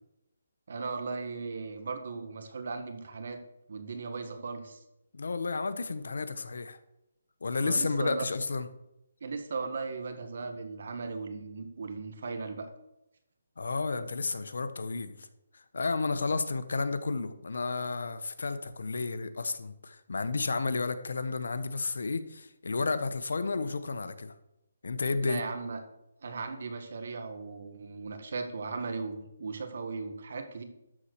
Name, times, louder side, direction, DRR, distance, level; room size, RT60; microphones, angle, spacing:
voice 1, 0.7-3.4 3.7-4.8 7.6-8.3 9.2-12.7 25.2-25.8 26.2-30.6, right 4 dB, 60° right, 7 dB, 1.6 m, -37 dB
voice 2, 5.1-6.8 7.4-8.7 13.6-15.3 15.7-24.3 24.8-25.4, left 4 dB, 75° left, 12 dB, 1.0 m, -32 dB
12.5 x 4.4 x 6.6 m, 0.86 s
hypercardioid pair, 165°, 0 cm